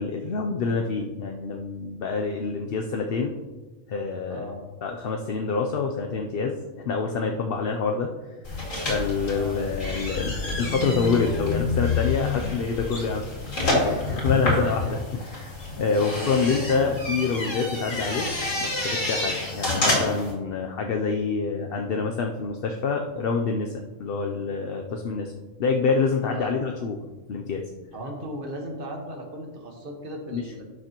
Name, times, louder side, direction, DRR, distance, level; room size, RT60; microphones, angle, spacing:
voice 1, 0.0-3.3 3.9-4.4 4.8-8.1 8.9-13.3 13.7-18.3 18.6-25.3 25.6-27.0 27.3-27.6 30.3-30.6, left 4 dB, 55° left, 3 dB, 0.8 m, -27 dB
voice 2, 4.3-4.6 9.3-9.7 14.3-14.9 15.9-16.4 26.3-26.6 27.9-30.6, right 1 dB, 45° right, 2 dB, 1.6 m, -36 dB
sound 1, 8.4-20.3, left 3 dB, 75° left, 2.8 m, -28 dB
11.5 x 6.6 x 3.0 m, 1.2 s
omnidirectional pair, 1.4 m